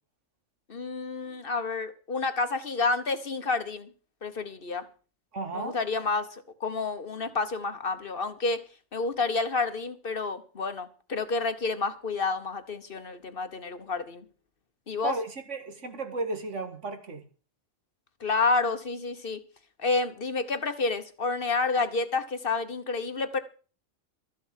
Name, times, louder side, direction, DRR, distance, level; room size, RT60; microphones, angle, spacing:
voice 1, 0.7-3.9 4.2-4.9 5.5-6.3 6.6-8.6 8.9-14.2 14.9-15.1 18.2-19.4 19.8-23.4, left 3 dB, 50° left, 1.3 m, -29 dB
voice 2, 5.3-5.8 15.0-17.2, right 3 dB, 75° right, 2.1 m, -34 dB
13.5 x 7.5 x 7.4 m
omnidirectional pair, 1.3 m